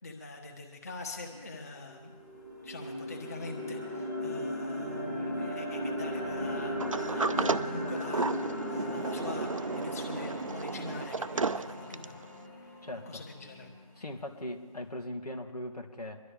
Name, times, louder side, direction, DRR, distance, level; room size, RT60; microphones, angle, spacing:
voice 1, 0.0-2.1 2.6-12.2 12.6-12.7 13.1-13.7, left 3 dB, 25° left, 2 dB, 1.5 m, -44 dB
sound 1, 1.3-1.4 1.9-13.9, equal, 5° left, 1.2 m, -37 dB
Sliding door, 6.8-12.2, right 4 dB, 55° right, 0.6 m, -33 dB
voice 2, 12.8-13.2 14.0-16.2, left 1 dB, 90° left, 3 dB, 2.1 m, -39 dB
24.0 x 12.5 x 3.4 m, 1.4 s
figure-of-eight pair, 165°, 20 cm